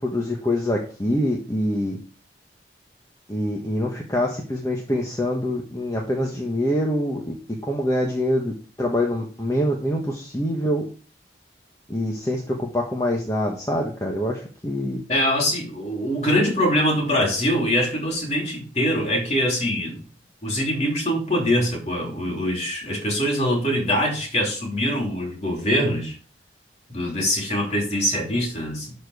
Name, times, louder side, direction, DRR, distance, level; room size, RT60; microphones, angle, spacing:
voice 1, 0.0-2.0 3.3-7.3 7.6-8.5 8.8-10.8 11.9-15.0, left 1 dB, 20° left, 1.3 m, -25 dB
voice 2, 15.1-20.0 20.4-26.1 26.9-28.9, equal, 40° left, 3.1 m, -23 dB
12.0 x 4.5 x 4.8 m
head